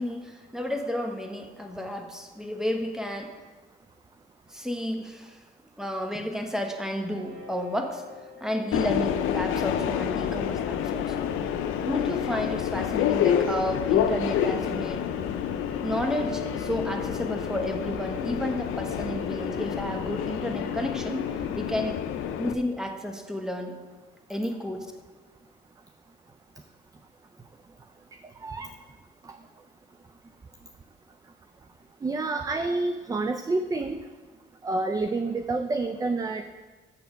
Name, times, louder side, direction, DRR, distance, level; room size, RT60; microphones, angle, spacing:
voice 1, 0.0-3.4 4.5-5.4 5.8-8.0 8.4-11.2 11.8-15.1 15.8-21.2 21.6-22.0 22.4-23.7 24.3-24.9, left 1 dB, 5° right, 4 dB, 1.0 m, -31 dB
sound 1, 7.0-10.2 11.0-21.9, right 1 dB, 85° right, 1.4 m, -47 dB
Subway metro underground, 8.7-22.5, left 9 dB, 90° left, 0.5 m, -28 dB
voice 2, 32.0-34.1 34.6-36.4, right 3 dB, 20° right, 8 dB, 0.4 m, -28 dB
7.0 x 6.9 x 5.1 m, 1.3 s
cardioid pair, 90°, 20 cm